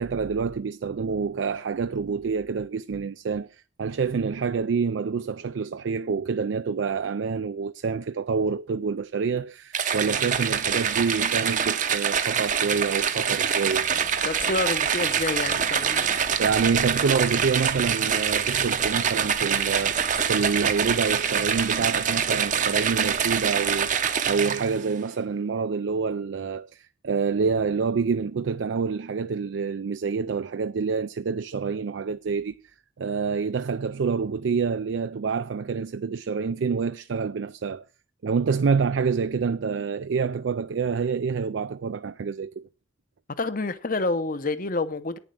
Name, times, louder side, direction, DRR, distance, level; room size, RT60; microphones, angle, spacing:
voice 1, 0.0-13.9 16.4-32.6 33.0-37.8 38.2-42.6, right 5 dB, 75° right, 0.4 m, -27 dB
sound 1, 9.7-24.8, right 7 dB, 40° right, 0.8 m, -25 dB
sound 2, 13.8-24.0, right 1 dB, 85° left, 1.2 m, -48 dB
voice 2, 14.2-16.1 43.4-45.2, left 3 dB, 45° left, 0.8 m, -28 dB
9.5 x 7.2 x 6.3 m
head